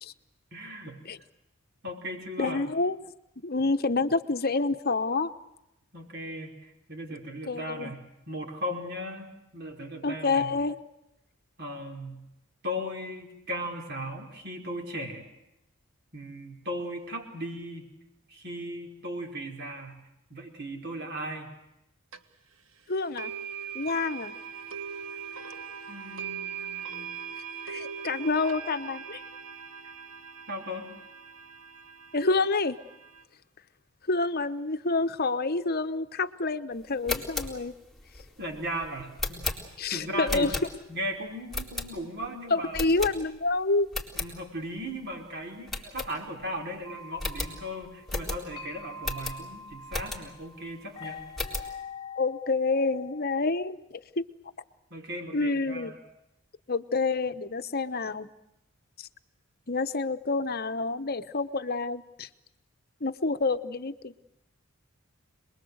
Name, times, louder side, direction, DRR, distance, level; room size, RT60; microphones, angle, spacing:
voice 1, 0.5-1.0 1.8-2.6 5.9-8.0 8.3-10.5 11.6-12.2 12.6-15.3 16.1-17.9 18.3-20.0 20.3-21.5 25.9-27.1 30.5-30.9 38.4-40.5 40.9-42.9 44.1-51.2 54.9-56.0, equal, 50° right, 2 dB, 5.0 m, -37 dB
voice 2, 2.4-3.0 3.4-5.3 7.5-7.9 10.0-10.8 22.9-23.3 23.7-24.3 27.7-29.2 32.1-32.8 34.1-37.7 39.8-40.5 42.5-43.9 52.2-53.8 54.2-54.3 55.3-55.9 56.7-58.3 59.0-59.1 59.7-62.3 63.0-64.2, left 3 dB, 45° left, 11 dB, 1.0 m, -28 dB
sound 1, 22.1-22.2 23.2-33.2, right 7 dB, 70° right, 1.5 m, -40 dB
sound 2, 36.9-41.0 41.5-42.3 42.7-43.5 43.8-44.3 44.8-44.9 45.1-45.2 45.7-46.6 46.8-46.9 47.2-50.5 50.9-51.8, left 3 dB, ahead, 3.8 m, -35 dB
sound 3, 46.8-53.3, left 3 dB, 20° left, 2.7 m, -44 dB
27.5 x 21.5 x 8.0 m, 0.88 s
head